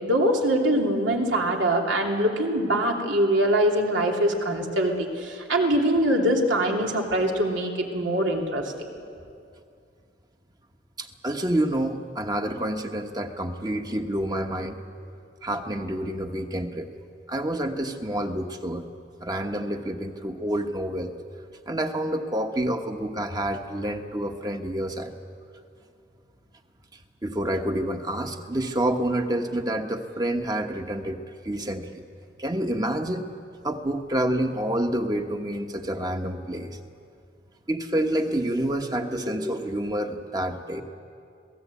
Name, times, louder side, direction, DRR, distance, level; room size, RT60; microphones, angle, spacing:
voice 1, 0.0-8.6, right 1 dB, 85° right, 1 dB, 2.9 m, -23 dB
voice 2, 11.0-14.8 15.4-16.9 17.3-18.9 19.2-21.1 21.7-25.1 27.2-32.0 32.4-33.3 33.6-36.8 37.7-40.8, right 1 dB, 20° right, 5 dB, 1.2 m, -28 dB
26.5 x 17.5 x 8.4 m, 2.5 s
head